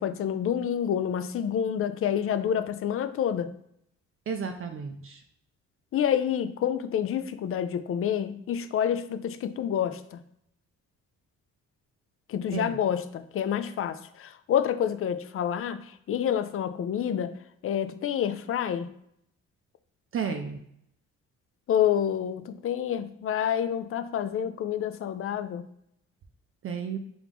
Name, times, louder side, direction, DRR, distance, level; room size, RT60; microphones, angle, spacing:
voice 1, 0.0-3.5 5.9-10.2 12.3-17.3 17.6-18.9 21.7-25.6, left 9 dB, 50° left, 11 dB, 0.4 m, -28 dB
voice 2, 4.3-5.2 12.5-12.8 20.1-20.6 26.6-27.0, right 6 dB, 45° right, 5 dB, 0.5 m, -32 dB
3.7 x 3.0 x 3.5 m, 0.73 s
cardioid pair, 90°, 30 cm